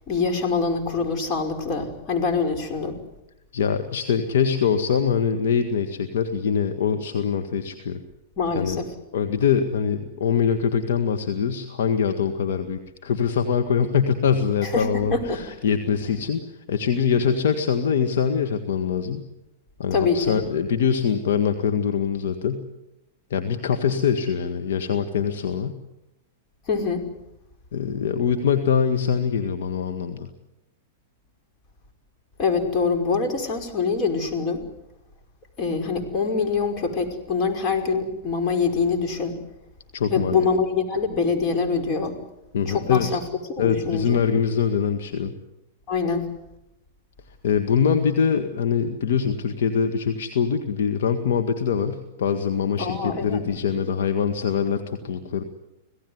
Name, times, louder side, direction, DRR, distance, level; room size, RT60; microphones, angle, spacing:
voice 1, 0.1-3.0 8.4-8.9 14.6-15.4 19.9-20.4 26.7-27.0 32.4-34.6 35.6-39.4 40.1-42.2 42.7-43.3 43.6-44.2 45.9-46.3 52.8-53.5, left 5 dB, 40° left, 5 dB, 5.3 m, -24 dB
voice 2, 3.5-8.0 8.5-8.8 9.1-19.2 19.8-22.7 23.3-25.7 27.7-30.3 39.9-40.5 42.5-43.2 43.6-45.3 47.4-55.4, left 7 dB, 70° left, 6 dB, 1.9 m, -23 dB
26.5 x 17.5 x 9.6 m, 0.90 s
hypercardioid pair, 110°, 0 cm